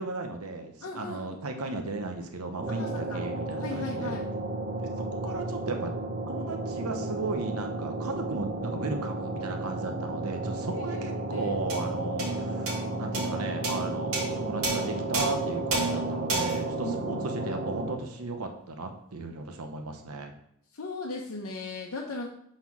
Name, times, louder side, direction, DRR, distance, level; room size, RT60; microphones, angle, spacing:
voice 1, 0.0-4.2 4.8-5.9 6.3-20.3, right 3 dB, 85° right, 5 dB, 0.8 m, -36 dB
voice 2, 0.8-1.4 2.7-3.2 3.6-4.2 10.7-11.5 16.8-17.3 20.7-22.3, left 2 dB, 75° left, -1 dB, 0.8 m, -38 dB
sound 1, 2.6-18.0, right 2 dB, 40° right, 0.7 m, -33 dB
sound 2, 11.7-18.3, right 3 dB, 70° right, 2.2 m, -33 dB
5.8 x 4.5 x 5.9 m, 0.72 s
head